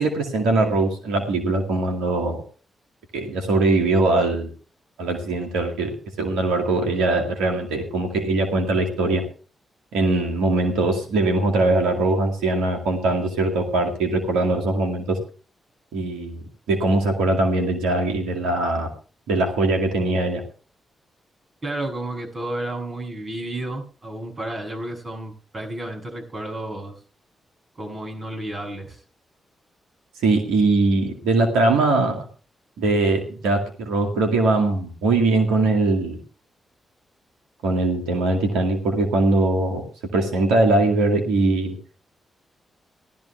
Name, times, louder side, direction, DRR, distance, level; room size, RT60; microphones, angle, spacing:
voice 1, 0.0-2.4 3.1-4.5 5.0-9.2 9.9-15.2 15.9-18.9 19.3-20.4 30.2-32.2 32.8-36.2 37.6-39.8 40.1-41.8, right 2 dB, 85° right, 3 dB, 2.2 m, -21 dB
voice 2, 21.6-27.0 27.8-29.0, right 1 dB, 45° right, 3 dB, 7.6 m, -31 dB
17.0 x 12.5 x 3.4 m, 0.38 s
hypercardioid pair, 40°, 0 cm